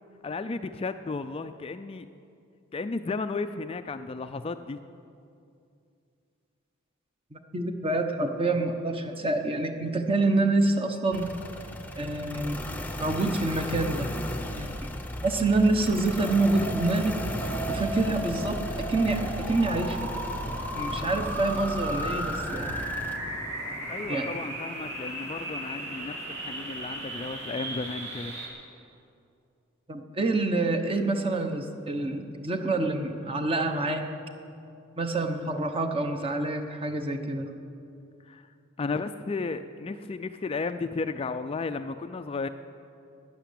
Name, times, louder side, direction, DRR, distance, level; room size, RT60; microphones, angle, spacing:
voice 1, 0.2-2.1 2.7-4.8 23.9-28.3 38.3-38.4 38.8-42.5, left 3 dB, 30° left, 9 dB, 0.4 m, -34 dB
voice 2, 7.3-11.3 11.9-12.6 13.0-14.9 15.2-20.1 20.7-22.9 24.1-24.3 29.9-34.1 35.0-37.5, right 2 dB, 25° right, 6 dB, 1.0 m, -27 dB
sound 1, 11.1-23.2, left 1 dB, 10° left, 0.8 m, -36 dB
sound 2, 16.2-28.5, right 1 dB, 55° right, 2.9 m, -35 dB
12.0 x 10.5 x 8.5 m, 2.5 s
head